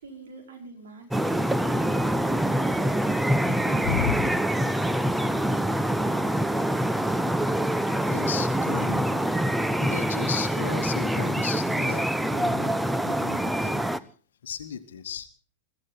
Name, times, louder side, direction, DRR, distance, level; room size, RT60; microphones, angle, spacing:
voice 1, 0.0-4.3, right 3 dB, 60° right, 2 dB, 5.2 m, -45 dB
sound 1, 1.1-14.0, right 1 dB, 5° right, 0.7 m, -25 dB
voice 2, 3.9-4.4 8.1-9.2 9.8-13.9 14.4-15.3, left 8 dB, 60° left, 11 dB, 1.2 m, -34 dB
22.5 x 15.0 x 4.0 m, 0.40 s
figure-of-eight pair, 95°, 0 cm